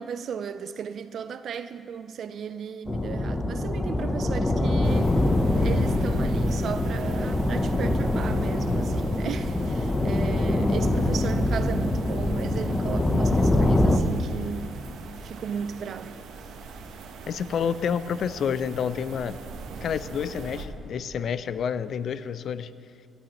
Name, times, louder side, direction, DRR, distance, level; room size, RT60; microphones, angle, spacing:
voice 1, 0.0-5.1 5.6-16.2, right 7 dB, 60° right, 0.4 m, -35 dB
sound 1, 2.9-14.0, left 1 dB, 20° left, 0.7 m, -24 dB
sound 2, 4.8-20.7, right 4 dB, 80° right, 1.0 m, -42 dB
voice 2, 17.3-19.4 19.8-22.7, left 7 dB, 65° left, 0.4 m, -29 dB
17.5 x 12.5 x 3.0 m
cardioid pair, 90°, 0 cm